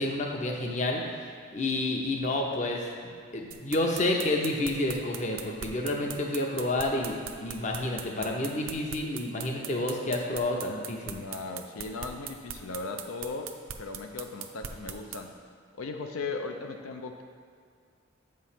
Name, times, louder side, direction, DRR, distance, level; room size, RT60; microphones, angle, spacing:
voice 1, 0.0-11.2, left 2 dB, 35° left, 1 dB, 0.6 m, -30 dB
sound 1, 3.5-15.2, right 9 dB, 75° right, 0.5 m, -39 dB
voice 2, 11.1-13.5 13.8-15.3 15.8-17.2, left 3 dB, 85° left, 4 dB, 0.5 m, -37 dB
7.9 x 3.2 x 5.7 m, 2.1 s
head